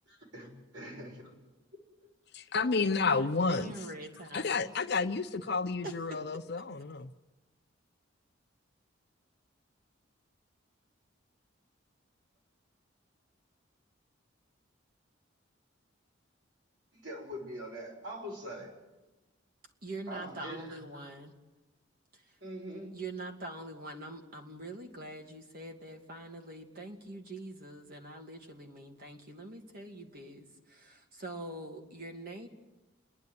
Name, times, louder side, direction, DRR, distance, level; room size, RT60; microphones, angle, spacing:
voice 1, 0.1-0.5 0.7-1.3 16.9-18.7 20.1-21.1 22.4-23.0, equal, 75° right, 6.2 m, -43 dB
voice 2, 2.3-3.7 4.3-7.1, left 4 dB, 55° left, 0.7 m, -30 dB
voice 3, 3.0-4.8 5.8-6.2 19.8-21.3 22.1-22.4 22.9-32.5, right 2 dB, 50° right, 2.0 m, -44 dB
28.5 x 11.0 x 9.4 m
head